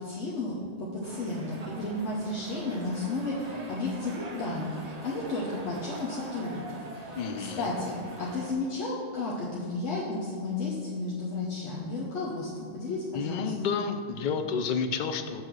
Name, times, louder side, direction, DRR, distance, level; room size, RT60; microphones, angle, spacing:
voice 1, 0.0-4.8 5.0-13.5, left 2 dB, 90° left, -6 dB, 1.3 m, -33 dB
sound 1, 1.0-8.5, right 2 dB, 40° right, 0.8 m, -43 dB
voice 2, 7.2-7.7 13.1-15.4, left 6 dB, 60° left, 8 dB, 0.5 m, -30 dB
7.6 x 3.5 x 6.1 m, 2.1 s
omnidirectional pair, 1.2 m